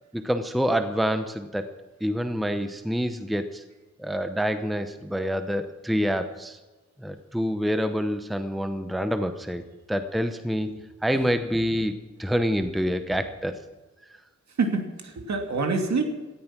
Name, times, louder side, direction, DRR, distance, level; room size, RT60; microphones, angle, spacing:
voice 1, 0.1-1.7 2.0-3.6 4.0-6.6 7.0-10.7 11.0-13.6, equal, ahead, 9 dB, 0.8 m, -27 dB
voice 2, 14.6-16.0, right 4 dB, 65° right, 4 dB, 2.5 m, -26 dB
18.0 x 13.5 x 6.0 m, 1.2 s
wide cardioid pair, 180°, 30 cm